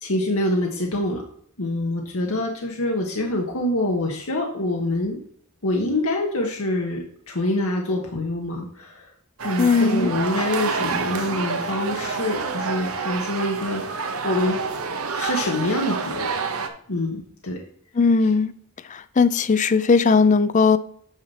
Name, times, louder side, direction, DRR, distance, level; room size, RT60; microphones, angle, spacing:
voice 1, 0.0-1.2 1.6-5.2 5.6-9.1 9.4-13.8 14.2-14.6 15.2-16.3 16.9-17.6 18.2-18.3, left 1 dB, 75° left, 0 dB, 1.2 m, -25 dB
sound 1, 9.4-16.7, right 4 dB, 75° right, 1.0 m, -28 dB
voice 2, 9.6-10.1 18.0-18.5 19.2-20.8, left 4 dB, 35° left, 13 dB, 0.4 m, -17 dB
8.8 x 5.6 x 4.2 m, 0.63 s
head